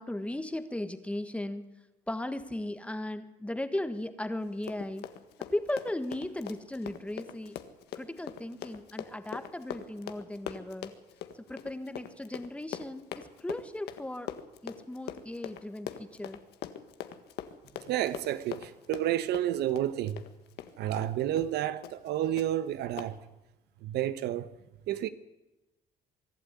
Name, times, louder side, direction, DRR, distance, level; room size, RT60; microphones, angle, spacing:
voice 1, 0.0-1.7 2.1-5.1 5.5-7.6 8.0-10.9 11.4-14.3 14.6-16.4, left 1 dB, 5° left, 1.6 m, -36 dB
Run, 4.5-21.1 21.4-21.5 21.8-22.1 22.4-22.5 23.0-23.1, left 11 dB, 75° left, 1.7 m, -42 dB
voice 2, 17.9-20.2 20.8-23.2 23.8-24.5 24.9-25.1, right 12 dB, 80° right, 1.1 m, -30 dB
24.0 x 12.0 x 9.9 m
cardioid pair, 110°, 17 cm